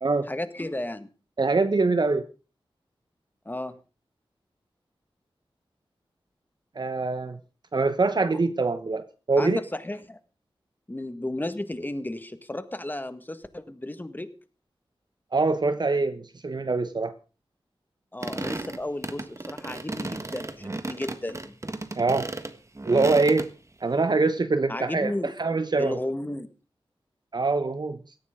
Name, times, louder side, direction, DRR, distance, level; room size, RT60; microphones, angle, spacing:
voice 1, 0.3-1.1 3.4-3.7 9.4-10.2 10.9-14.3 18.1-21.6 24.7-25.3 25.8-26.5, left 1 dB, 20° left, 11 dB, 1.7 m, -33 dB
voice 2, 1.4-2.3 6.8-7.4 7.7-9.6 15.3-17.1 22.0-22.3 22.8-23.5 23.8-25.1 25.4-26.0 27.3-28.0, right 3 dB, 50° right, 10 dB, 1.0 m, -24 dB
sound 1, 18.2-23.5, right 2 dB, 30° right, 1.6 m, -34 dB
17.5 x 14.0 x 3.8 m, 0.33 s
wide cardioid pair, 65°, 9 cm